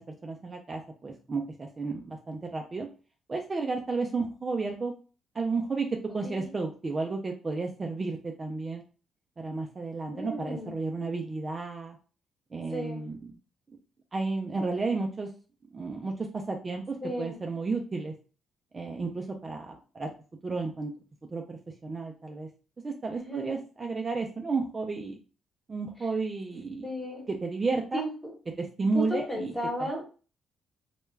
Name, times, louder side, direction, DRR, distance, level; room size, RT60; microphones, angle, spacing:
voice 1, 0.2-2.9 3.3-4.9 5.3-5.9 6.1-8.8 9.4-12.0 12.5-13.4 14.1-15.3 15.7-18.1 18.7-20.1 20.4-20.9 21.3-22.5 22.8-25.2 25.7-26.9 27.3-28.0 28.6-29.5 29.8-29.9, right 3 dB, 30° right, 2 dB, 0.4 m, -32 dB
voice 2, 10.1-10.7 12.7-13.0 17.0-17.4 23.1-23.6 26.8-27.3 27.9-28.1 28.9-30.0, equal, 10° left, -1 dB, 1.1 m, -34 dB
2.2 x 2.2 x 3.1 m, 0.36 s
cardioid pair, 90°, 0 cm